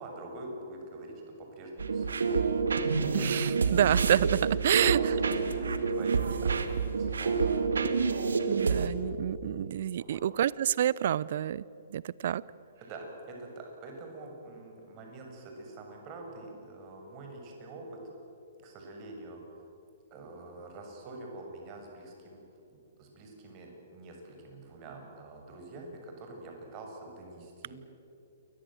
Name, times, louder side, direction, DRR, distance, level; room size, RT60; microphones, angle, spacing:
voice 1, 0.0-2.5 4.8-7.7 10.0-10.2 12.8-18.0 18.6-19.4 20.1-22.4 22.7-27.8, right 2 dB, 35° right, 2 dB, 7.0 m, -45 dB
sound 1, 1.8-8.9, right 5 dB, 70° right, 1.8 m, -28 dB
voice 2, 3.1-5.0 8.5-11.6 11.9-12.4, right 10 dB, 55° right, 22 dB, 0.6 m, -28 dB
28.5 x 22.5 x 7.8 m, 2.8 s
figure-of-eight pair, 120°, 0 cm